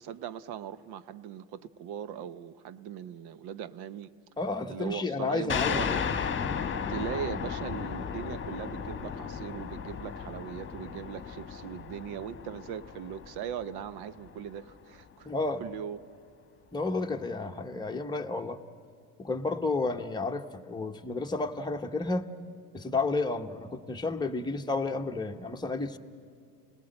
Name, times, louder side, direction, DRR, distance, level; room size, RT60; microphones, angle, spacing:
voice 1, 0.0-4.1 4.7-6.1 6.9-15.3 15.6-16.0, right 9 dB, 55° right, 0.8 m, -39 dB
voice 2, 4.4-6.1 6.4-6.6 15.3-15.6 16.7-18.6 19.2-22.3 22.7-26.0, left 3 dB, 10° left, 1.0 m, -31 dB
sound 1, 5.5-14.7, left 7 dB, 25° left, 1.3 m, -35 dB
28.5 x 19.0 x 7.8 m
supercardioid pair, 105°, 48 cm